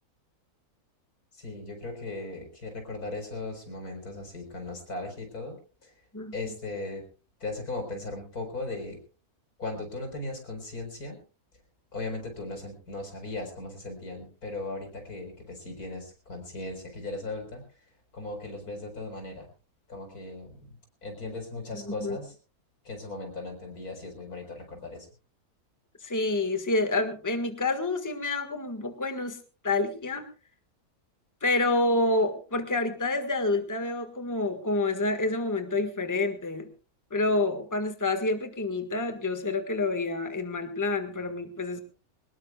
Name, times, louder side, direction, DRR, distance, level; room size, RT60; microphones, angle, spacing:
voice 1, 1.4-5.9 6.3-7.1 7.4-9.0 9.6-11.2 11.9-17.6 18.1-19.5 19.9-20.7 21.0-22.3 22.8-25.1, left 2 dB, 90° left, 4 dB, 5.0 m, -37 dB
voice 2, 6.1-6.5 21.7-22.2 26.0-29.4 29.6-30.2 31.4-36.7 37.1-41.8, left 2 dB, 10° left, 7 dB, 1.6 m, -28 dB
23.0 x 19.5 x 2.3 m, 0.35 s
omnidirectional pair, 1.6 m